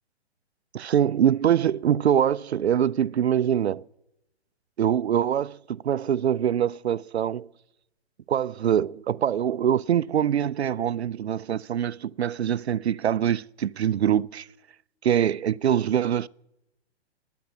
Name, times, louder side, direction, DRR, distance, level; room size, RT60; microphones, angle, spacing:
voice 1, 0.7-3.8 4.8-7.5 8.3-14.5 15.0-16.3, right 9 dB, 70° right, 0.5 m, -24 dB
19.5 x 9.1 x 7.5 m
figure-of-eight pair, 120°, 33 cm